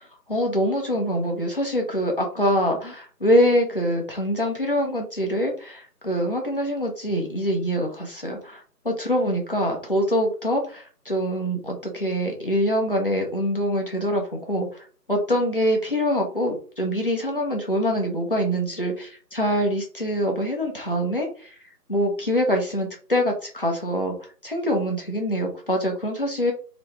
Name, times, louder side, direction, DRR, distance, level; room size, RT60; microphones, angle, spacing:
voice 1, 0.0-21.5 21.9-26.5, equal, 35° left, 1 dB, 0.8 m, -24 dB
3.1 x 3.0 x 3.2 m, 0.41 s
figure-of-eight pair, 170°, 49 cm